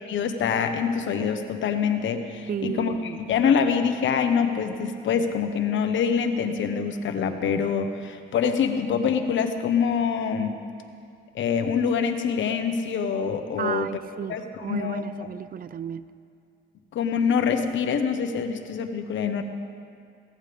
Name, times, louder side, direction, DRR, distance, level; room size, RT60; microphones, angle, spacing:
voice 1, 0.1-10.5 11.3-13.9 14.3-15.3 16.9-19.4, left 6 dB, 70° left, 7 dB, 1.3 m, -25 dB
voice 2, 2.5-3.2 13.6-14.4 14.6-16.0, right 8 dB, 45° right, 15 dB, 0.7 m, -33 dB
22.0 x 17.0 x 3.6 m, 2.4 s
cardioid pair, 90°, 20 cm